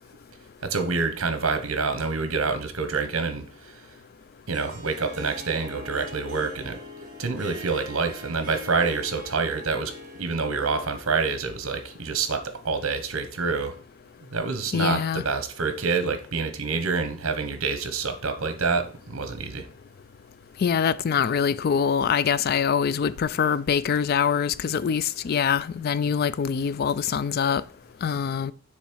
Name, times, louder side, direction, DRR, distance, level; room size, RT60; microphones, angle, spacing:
voice 1, 0.6-3.8 4.5-9.9 10.2-13.8 14.3-19.7, right 4 dB, 70° right, 1.0 m, -27 dB
Harp, 4.5-13.0, left 1 dB, 40° right, 1.8 m, -43 dB
voice 2, 14.7-15.2 20.6-27.6 28.0-28.5, left 7 dB, 45° left, 0.3 m, -24 dB
7.0 x 3.2 x 6.2 m
head